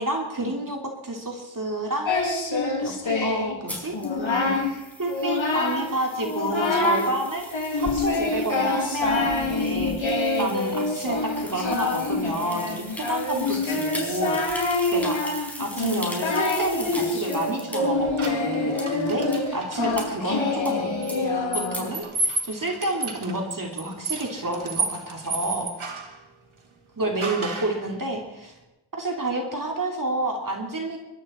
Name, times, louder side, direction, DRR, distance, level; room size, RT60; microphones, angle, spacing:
voice 1, 0.0-2.1 2.8-4.6 5.0-25.7 27.0-28.5 28.9-31.0, right 1 dB, 45° right, 1 dB, 2.8 m, -30 dB
Singing, 2.1-3.6 3.9-4.7 5.1-5.9 6.2-7.1 7.5-22.0, left 3 dB, 75° left, 2.7 m, -26 dB
sound 1, 3.7-17.8 18.2-18.3 18.8-18.9 19.3-19.4 20.0-20.1 20.7-20.8 21.1-21.2 21.7-21.8, left 1 dB, 5° left, 4.9 m, -40 dB
sound 2, 18.2-20.0 21.0-26.2 27.2-27.8, right 3 dB, 85° right, 2.1 m, -32 dB
25.5 x 12.5 x 4.3 m, 0.97 s
wide cardioid pair, 65°, 47 cm